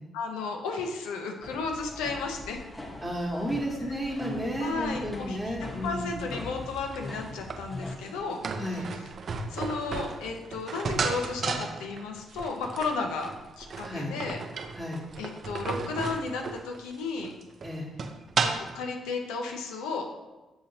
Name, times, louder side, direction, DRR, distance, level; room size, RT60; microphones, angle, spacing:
voice 1, 0.1-2.6 4.6-8.4 9.5-14.4 15.2-17.3 18.4-20.1, left 4 dB, 80° left, 2 dB, 0.6 m, -34 dB
sound 1, 1.4-8.0, left 2 dB, 10° left, 1.0 m, -41 dB
voice 2, 3.0-6.3 8.6-8.9 13.8-14.1 14.7-15.0 17.6-17.9, equal, 10° right, -6 dB, 1.2 m, -32 dB
sound 2, 6.0-18.8, right 4 dB, 50° right, 0.5 m, -34 dB
6.6 x 2.8 x 2.8 m, 1.1 s
hypercardioid pair, 45°, 0 cm